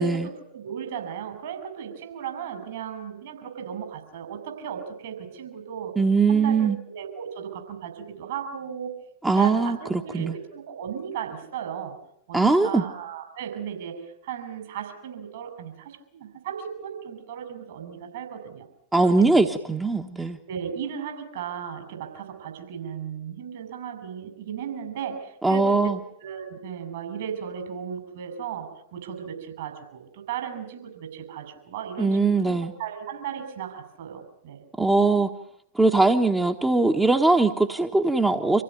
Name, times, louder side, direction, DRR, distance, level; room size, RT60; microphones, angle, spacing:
voice 1, 0.0-6.0 6.3-8.9 9.3-12.0 12.3-18.6 19.0-19.4 20.5-25.9 26.2-32.5 32.8-34.6, right 8 dB, 55° right, 6 dB, 6.2 m, -36 dB
voice 2, 6.0-6.8 9.2-10.3 12.3-12.8 18.9-20.4 25.4-26.0 32.0-32.7 34.8-35.3 35.7-38.6, right 3 dB, 10° right, 5 dB, 1.4 m, -21 dB
27.0 x 16.5 x 9.5 m, 0.74 s
figure-of-eight pair, 90°, 0 cm